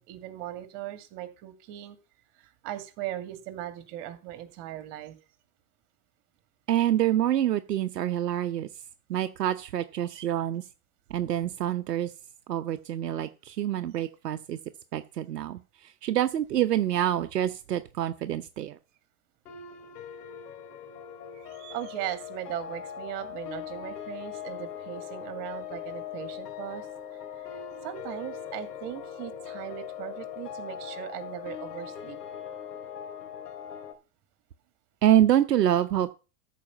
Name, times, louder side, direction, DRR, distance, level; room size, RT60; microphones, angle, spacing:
voice 1, 0.0-2.0 2.4-5.2 21.3-26.9 27.8-32.2, right 13 dB, 50° right, 10 dB, 2.4 m, -38 dB
voice 2, 6.7-8.7 9.1-10.6 11.1-12.1 12.5-14.6 14.9-18.8 35.0-36.1, right 11 dB, 85° right, 10 dB, 0.9 m, -26 dB
sound 1, 19.4-33.9, left 9 dB, 80° left, 2.7 m, -40 dB
13.0 x 5.1 x 7.2 m, 0.33 s
hypercardioid pair, 105°, 47 cm